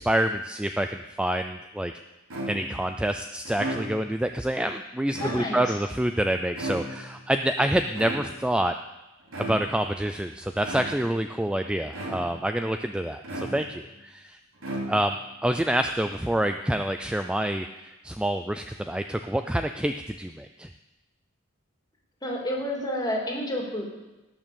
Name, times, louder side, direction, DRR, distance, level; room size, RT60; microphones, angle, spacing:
voice 1, 0.0-1.9 2.5-8.7 9.4-14.4 14.9-15.2 15.4-20.7, right 1 dB, 5° right, 7 dB, 0.3 m, -27 dB
sound 1, 2.3-2.9 3.4-4.2 5.0-5.8 6.6-7.2 7.9-8.6 9.3-9.8 10.6-11.2 11.9-12.5 13.2-13.9 14.6-15.3, right 1 dB, 70° right, 4.1 m, -35 dB
voice 2, 5.2-5.6 22.2-23.9, left 1 dB, 20° left, -1 dB, 2.5 m, -30 dB
18.5 x 6.2 x 6.9 m, 1.1 s
head